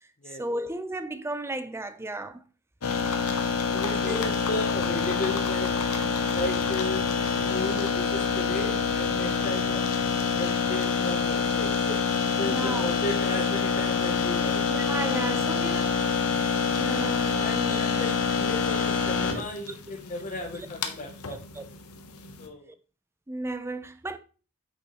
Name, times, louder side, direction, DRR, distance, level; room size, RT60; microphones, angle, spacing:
voice 1, 0.3-2.4 4.0-4.3 11.9-12.0 12.4-13.0 14.7-16.0 16.7-18.1 19.3-19.8 20.4-20.7 21.5-21.6 23.3-24.2, right 1 dB, 10° right, 0.6 m, -34 dB
sound 1, 2.8-22.5, left 5 dB, 90° left, 1.0 m, -27 dB
voice 2, 3.7-5.8 6.3-7.1 7.4-9.8 10.2-11.8 12.4-14.6 15.3-15.4 17.4-21.4 22.4-22.7, left 2 dB, 35° left, 0.8 m, -34 dB
8.5 x 6.4 x 3.0 m
head